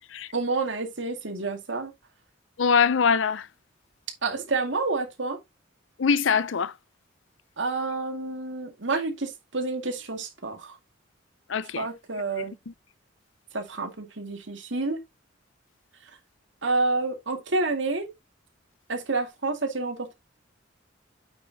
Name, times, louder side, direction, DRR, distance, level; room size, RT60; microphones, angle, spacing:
voice 1, 0.3-1.9 4.2-5.4 7.6-10.7 11.8-12.5 13.5-15.0 16.6-18.1 18.9-20.1, right 3 dB, 70° right, 2.1 m, -29 dB
voice 2, 2.6-3.5 6.0-6.7 11.5-11.9 12.4-12.7, left 6 dB, 80° left, 0.6 m, -23 dB
8.6 x 5.8 x 2.8 m
head